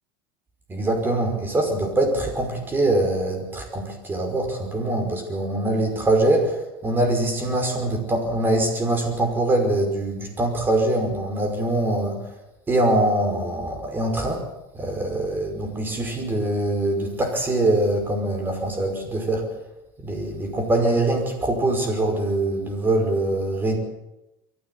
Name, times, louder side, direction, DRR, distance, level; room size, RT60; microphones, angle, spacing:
voice 1, 0.7-12.2 12.7-14.4 14.7-19.4 20.0-23.8, right 1 dB, 20° right, 4 dB, 5.5 m, -23 dB
23.5 x 15.5 x 8.2 m, 0.93 s
supercardioid pair, 135°, 11 cm